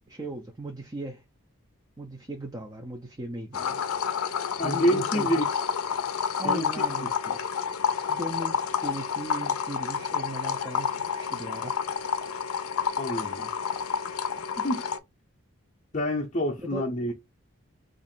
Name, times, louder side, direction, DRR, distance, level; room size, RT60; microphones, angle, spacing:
voice 1, 0.1-1.2 2.0-4.0 4.6-5.5 6.4-7.1 8.1-11.8 16.6-16.8, right 1 dB, 15° right, 0.4 m, -37 dB
sound 1, 3.5-15.0, left 7 dB, 90° left, 0.5 m, -29 dB
voice 2, 4.6-5.5 6.4-6.8 13.0-13.5 14.6-14.8 15.9-17.1, equal, 35° left, 0.6 m, -27 dB
3.0 x 2.5 x 4.3 m
head